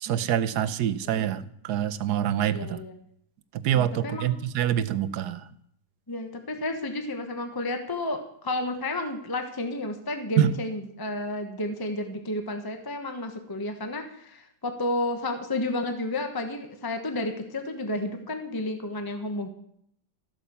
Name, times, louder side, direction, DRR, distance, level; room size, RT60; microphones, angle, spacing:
voice 1, 0.0-2.8 3.5-5.5 10.4-10.5, right 10 dB, 70° right, 15 dB, 1.2 m, -26 dB
voice 2, 2.5-2.9 3.7-4.4 6.1-19.5, left 2 dB, 15° left, 6 dB, 1.1 m, -31 dB
14.0 x 8.5 x 6.9 m, 0.70 s
omnidirectional pair, 1.9 m